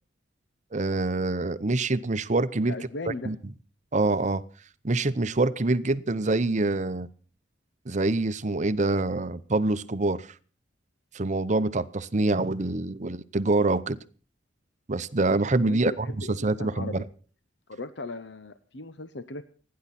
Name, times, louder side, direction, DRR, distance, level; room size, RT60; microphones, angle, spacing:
voice 1, 0.7-2.7 3.1-3.4 3.9-4.4 4.8-7.1 7.9-10.3 11.1-14.0 14.9-17.0, right 2 dB, 40° right, 14 dB, 0.8 m, -25 dB
voice 2, 2.7-3.3 15.6-17.1 17.7-19.4, left 2 dB, 65° left, 12 dB, 0.9 m, -38 dB
30.0 x 10.5 x 4.2 m, 0.39 s
head